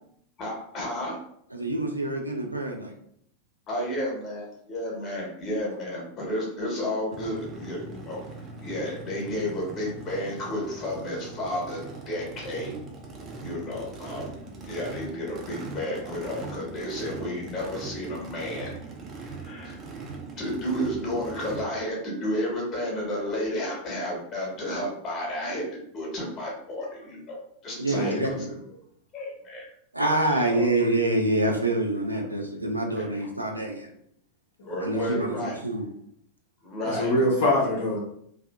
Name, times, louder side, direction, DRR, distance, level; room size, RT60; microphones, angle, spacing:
voice 1, 0.4-1.2 3.7-8.2 8.6-12.7 13.4-14.3 14.6-18.7 19.3-19.8 20.4-25.6 25.9-28.3 29.1-29.6 30.5-30.7 33.0-33.1 34.6-35.5 36.6-37.1, left 1 dB, 30° left, -2 dB, 1.0 m, -32 dB
voice 2, 1.5-2.9 27.8-28.6 29.9-33.9 34.8-35.9, right 1 dB, 85° right, 2 dB, 0.4 m, -26 dB
Race car auto racing / Idling / Accelerating revving vroom, 7.1-21.6, right 3 dB, 30° right, 0.5 m, -40 dB
voice 3, 27.9-28.2 35.1-35.3 36.8-38.0, left 1 dB, 60° left, -5 dB, 0.7 m, -24 dB
2.6 x 2.4 x 2.2 m, 0.69 s
figure-of-eight pair, 90°, 0 cm